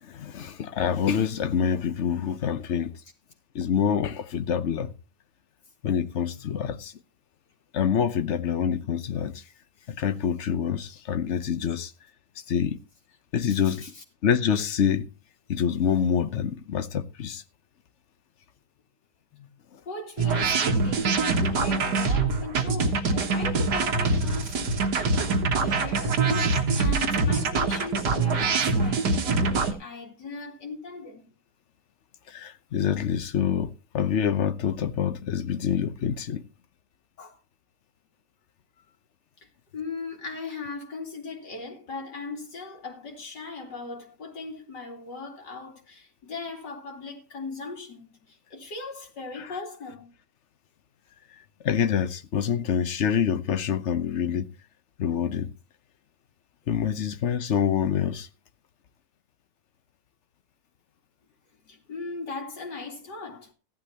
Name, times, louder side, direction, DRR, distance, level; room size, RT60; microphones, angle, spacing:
voice 1, 0.0-2.9 3.5-4.9 5.8-6.9 7.7-9.4 9.9-11.9 12.5-12.8 13.3-13.8 14.2-15.1 15.5-17.4 19.7-19.8 32.3-36.4 49.4-49.5 51.6-54.5 55.0-55.5 56.7-58.3, left 8 dB, 50° left, 1.1 m, -26 dB
voice 2, 13.5-14.0 19.3-19.5 19.9-24.9 25.5-31.3 37.2-37.4 39.4-50.1 61.6-63.5, left 3 dB, 85° left, 3.2 m, -38 dB
sound 1, 20.2-29.7, right 4 dB, 80° right, 2.0 m, -24 dB
15.5 x 11.5 x 2.9 m
omnidirectional pair, 1.8 m